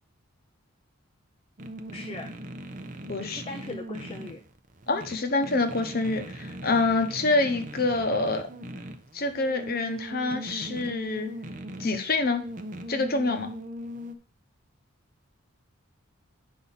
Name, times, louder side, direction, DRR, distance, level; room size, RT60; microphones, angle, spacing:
sound 1, 1.6-14.1, right 1 dB, 35° right, 0.7 m, -40 dB
voice 1, 1.9-2.3 3.2-4.4, left 2 dB, 25° left, 3 dB, 0.5 m, -39 dB
voice 2, 3.1-3.4 4.9-8.5 9.1-11.3 11.8-12.4 12.9-13.5, left 3 dB, 45° left, 7 dB, 0.9 m, -26 dB
8.7 x 5.5 x 4.0 m, 0.42 s
head